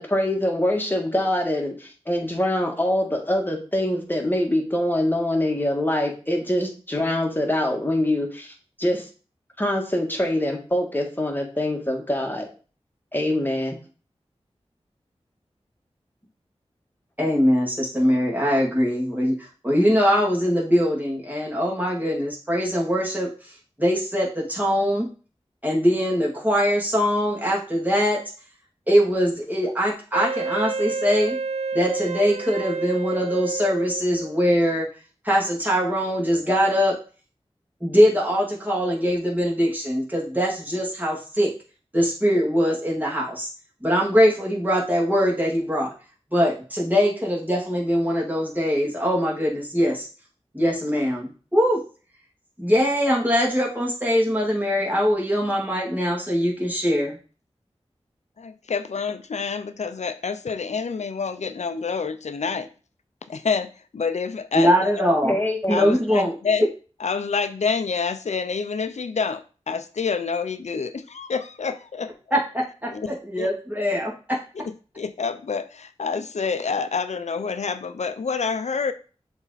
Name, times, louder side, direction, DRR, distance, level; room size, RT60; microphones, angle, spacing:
voice 1, 0.0-9.1 9.6-12.5 13.1-13.8 65.2-65.9, left 1 dB, 15° left, 1 dB, 1.8 m, -24 dB
voice 2, 17.2-25.1 25.6-28.2 28.9-31.4 31.7-34.9 35.2-37.0 37.8-41.5 41.9-43.5 43.8-45.9 46.3-50.1 50.5-51.8 52.6-57.2 64.5-65.4 65.7-66.3 72.3-74.1, equal, 15° right, -3 dB, 2.6 m, -22 dB
Wind instrument woodwind instrument, 30.1-34.4, right 4 dB, 75° right, 0.4 m, -29 dB
voice 3, 58.4-62.7 63.3-65.1 65.7-66.7 67.0-72.1 72.9-73.1 73.4-73.5 74.6-78.9, left 5 dB, 85° left, 11 dB, 0.6 m, -28 dB
7.1 x 3.5 x 4.1 m, 0.37 s
wide cardioid pair, 45°, 11 cm